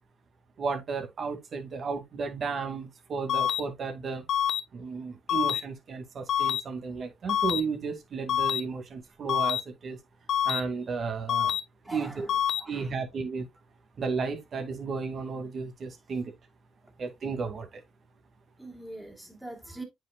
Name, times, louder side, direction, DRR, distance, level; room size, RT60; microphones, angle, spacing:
voice 1, 0.6-4.2 4.7-10.0 10.5-11.6 11.9-12.3 12.7-13.5 14.0-16.3 17.0-17.8, right 4 dB, 50° right, 2.2 m, -33 dB
sound 1, 3.3-3.6 4.3-4.6 5.3-5.6 6.3-6.6 7.3-7.6 8.3-8.6 9.3-9.6 10.3-10.6 11.3-11.6 12.3-12.6, left 10 dB, 65° left, 0.6 m, -26 dB
voice 2, 11.8-12.9 18.6-19.8, right 1 dB, 5° right, 2.7 m, -43 dB
9.1 x 5.3 x 2.3 m
supercardioid pair, 70°, 0 cm